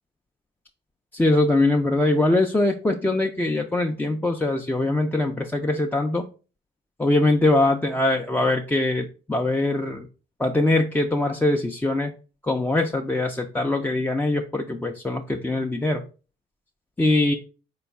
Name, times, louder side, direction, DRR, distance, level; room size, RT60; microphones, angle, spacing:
voice 1, 1.1-6.2 7.0-10.1 10.4-12.1 12.5-16.0 17.0-17.3, left 2 dB, 10° left, 2 dB, 0.4 m, -22 dB
4.3 x 2.3 x 4.1 m, 0.35 s
cardioid pair, 90°, 20 cm